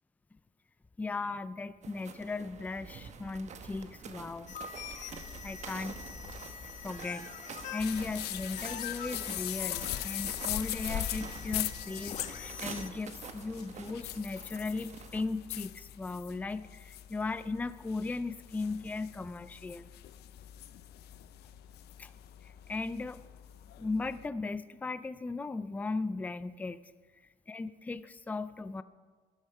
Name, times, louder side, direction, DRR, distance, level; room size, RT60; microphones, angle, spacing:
voice 1, 1.0-4.6 4.9-5.0 5.4-6.0 6.8-19.9 22.0-22.1 22.4-23.2 23.8-26.9 27.5-28.8, left 3 dB, 10° left, 14 dB, 0.4 m, -37 dB
sound 1, 1.8-15.3, right 6 dB, 45° right, 1.0 m, -47 dB
sound 2, 4.5-12.9, left 7 dB, 45° left, 1.1 m, -44 dB
sound 3, 7.8-24.3, left 13 dB, 75° left, 0.6 m, -41 dB
12.0 x 8.2 x 5.6 m, 1.5 s
cardioid pair, 110°, 17 cm